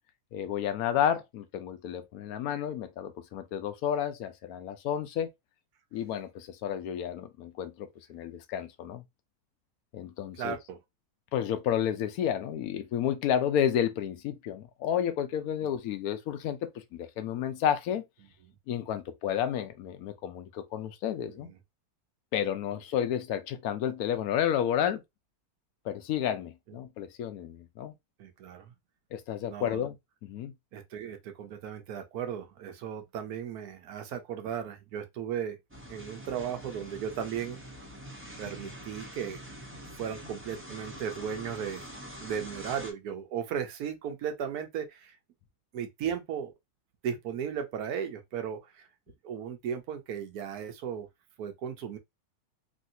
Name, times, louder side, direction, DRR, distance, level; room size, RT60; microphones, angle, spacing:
voice 1, 0.3-5.3 5.9-9.0 9.9-10.6 11.3-18.0 18.7-21.5 22.3-25.0 25.8-27.9 29.1-29.9 30.2-30.5, left 9 dB, 75° left, 1.0 m, -31 dB
voice 2, 10.4-10.8 21.2-21.5 28.2-28.7 29.5-29.8 30.7-35.6 35.9-37.6 38.4-39.4 40.0-41.9 42.2-45.2 45.7-46.5 47.0-48.9 49.2-51.1 51.4-52.0, right 8 dB, 85° right, 1.2 m, -36 dB
sound 1, 35.7-42.9, equal, 10° right, 0.6 m, -45 dB
3.2 x 2.7 x 2.6 m
omnidirectional pair, 1.6 m